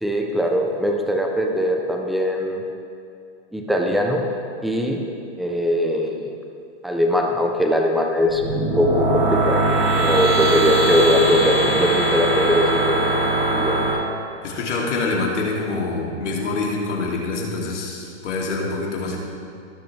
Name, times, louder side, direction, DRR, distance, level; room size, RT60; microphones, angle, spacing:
voice 1, 0.0-2.6 3.5-4.3 4.6-5.0 5.4-6.3 6.8-9.6 10.0-13.0 13.5-13.8, equal, ahead, 1 dB, 0.6 m, -21 dB
sound 1, 8.2-13.9, right 2 dB, 30° right, 2.8 m, -21 dB
voice 2, 14.4-19.2, left 3 dB, 80° left, -2 dB, 2.8 m, -25 dB
18.0 x 6.6 x 3.4 m, 2.5 s
hypercardioid pair, 140°, 35 cm